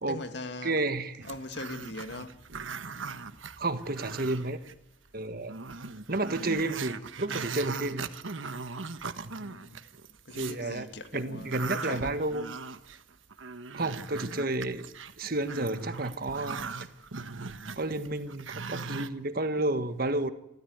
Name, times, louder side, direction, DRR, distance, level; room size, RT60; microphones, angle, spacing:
voice 1, 0.1-0.7 1.2-2.4 9.4-9.8 10.3-12.2, left 2 dB, 60° left, 1.9 m, -40 dB
voice 2, 0.6-1.2 3.6-4.6 5.1-5.6 6.1-8.1 9.2-9.3 10.4-10.9 11.1-12.5 13.7-14.9 15.2-16.6 17.8-20.3, right 2 dB, 50° right, 1.6 m, -31 dB
Growling, 1.2-4.7 5.1-5.2 5.5-10.6 11.0-19.1, right 4 dB, 85° right, 1.3 m, -39 dB
28.0 x 14.0 x 9.5 m
head